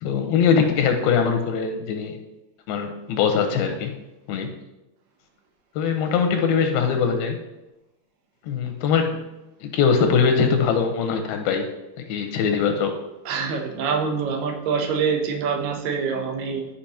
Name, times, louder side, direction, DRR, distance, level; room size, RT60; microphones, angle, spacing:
voice 1, 0.0-2.2 2.7-3.9 4.3-4.5 5.8-7.4 8.5-9.3 9.6-11.7 12.0-13.0, left 6 dB, 85° left, 4 dB, 2.5 m, -22 dB
voice 2, 13.3-16.7, right 5 dB, 75° right, 3 dB, 2.2 m, -25 dB
11.5 x 5.1 x 2.9 m, 0.97 s
omnidirectional pair, 4.4 m